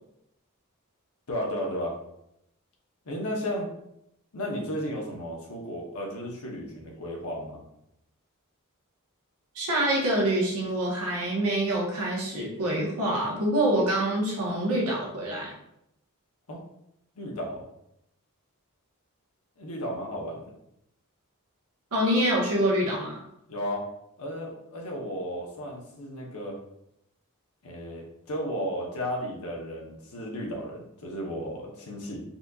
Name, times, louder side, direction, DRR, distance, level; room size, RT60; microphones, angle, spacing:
voice 1, 1.3-1.9 3.0-3.7 4.3-7.6 16.5-16.6 17.1-17.6 19.6-20.5 23.5-23.8 24.2-26.6 27.6-32.2, equal, 75° left, -1 dB, 0.9 m, -34 dB
voice 2, 9.5-15.5 21.9-23.2, right 1 dB, 80° right, -4 dB, 1.1 m, -26 dB
4.1 x 2.7 x 2.4 m, 0.79 s
head